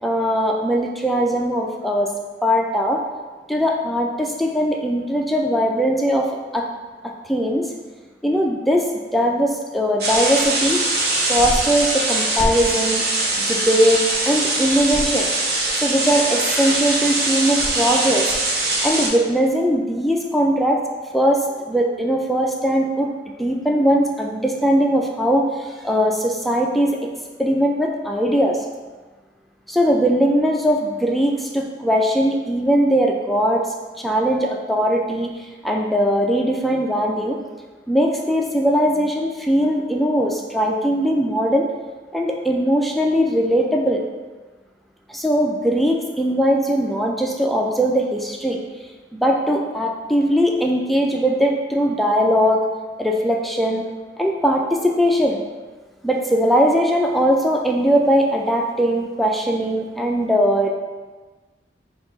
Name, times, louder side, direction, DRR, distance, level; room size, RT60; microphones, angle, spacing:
voice 1, 0.0-2.1 2.4-3.0 3.5-6.7 7.2-7.7 8.2-10.9 11.3-15.3 15.7-18.4 18.8-20.8 21.1-27.0 27.4-28.6 29.7-33.7 34.0-35.3 35.6-37.4 37.9-41.7 42.1-44.1 45.1-48.6 49.1-52.7 53.0-53.8 54.2-55.4 56.0-60.7, equal, ahead, 0 dB, 0.3 m, -20 dB
sound 1, 10.0-19.1, right 2 dB, 60° right, 0.8 m, -22 dB
5.6 x 2.4 x 3.9 m, 1.3 s
head